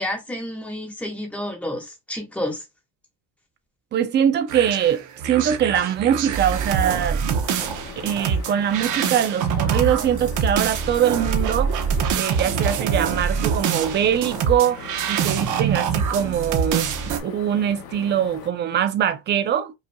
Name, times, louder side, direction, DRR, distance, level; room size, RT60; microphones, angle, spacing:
voice 1, 0.0-2.6, left 1 dB, 5° left, 1.2 m, -30 dB
voice 2, 3.9-7.2 7.6-7.7 8.0-11.7 12.2-17.0 17.2-19.7, right 9 dB, 25° right, 0.4 m, -22 dB
sound 1, 4.5-17.2, right 7 dB, 45° right, 0.8 m, -25 dB
sound 2, 7.4-18.5, left 7 dB, 60° left, 0.9 m, -40 dB
5.5 x 2.6 x 2.2 m
cardioid pair, 155°, 42 cm